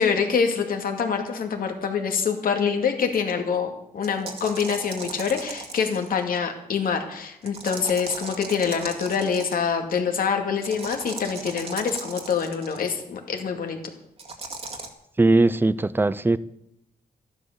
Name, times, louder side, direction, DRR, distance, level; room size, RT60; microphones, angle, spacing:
voice 1, 0.0-13.8, left 6 dB, 75° left, 4 dB, 2.4 m, -25 dB
sound 1, 4.0-6.2 7.5-9.7 10.6-12.8 14.2-14.9, right 3 dB, 40° right, 2.1 m, -37 dB
voice 2, 15.2-16.4, right 2 dB, 15° right, 17 dB, 0.5 m, -19 dB
13.0 x 11.5 x 6.7 m, 0.79 s
wide cardioid pair, 115°, 15 cm